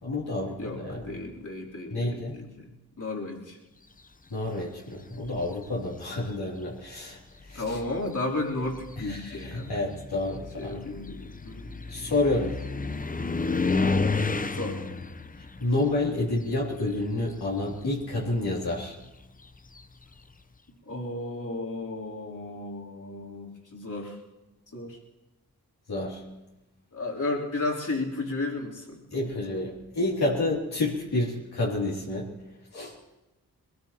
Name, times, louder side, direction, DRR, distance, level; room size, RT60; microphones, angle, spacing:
voice 1, 0.0-1.0 1.9-2.4 4.3-7.2 7.5-7.8 9.0-10.8 11.9-12.6 15.6-19.0 25.9-26.2 29.1-32.3 32.7-32.9, left 2 dB, 70° left, -5 dB, 2.9 m, -29 dB
voice 2, 0.6-2.7 3.0-3.6 7.6-9.8 10.6-11.7 14.5-14.8 20.8-24.2 24.7-25.0 26.9-29.0, left 2 dB, 50° left, -3 dB, 3.5 m, -33 dB
starting the engine and passing bye, 5.1-5.7 6.7-6.8 7.3-17.3 17.5-20.2, left 3 dB, 20° left, 0.7 m, -32 dB
21.5 x 19.0 x 3.0 m, 1.0 s
cardioid pair, 45°, 39 cm